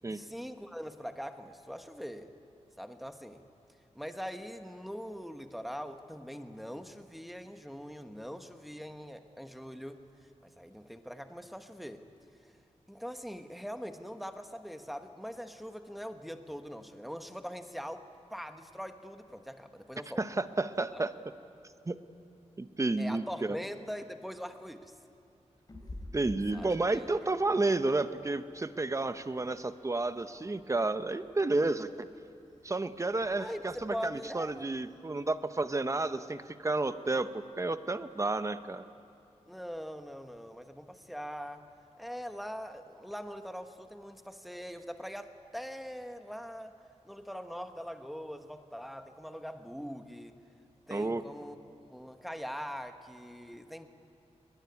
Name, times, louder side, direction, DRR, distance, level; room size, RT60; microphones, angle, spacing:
voice 1, 0.0-2.3 2.8-3.4 3.9-10.0 10.4-12.1 12.9-20.2 23.0-24.9 26.5-27.6 33.4-34.7 39.5-41.7 42.0-46.8 47.0-50.4 50.9-51.6 51.9-53.9, equal, ahead, 7 dB, 1.2 m, -42 dB
voice 2, 20.2-21.1 21.9-22.0 22.6-23.6 26.1-32.1 32.6-38.9 50.9-51.2, right 2 dB, 25° right, 11 dB, 0.9 m, -31 dB
Meow, 25.7-35.3, left 1 dB, 35° left, 5.0 m, -53 dB
21.5 x 20.0 x 9.8 m, 2.7 s
wide cardioid pair, 120°, 12 cm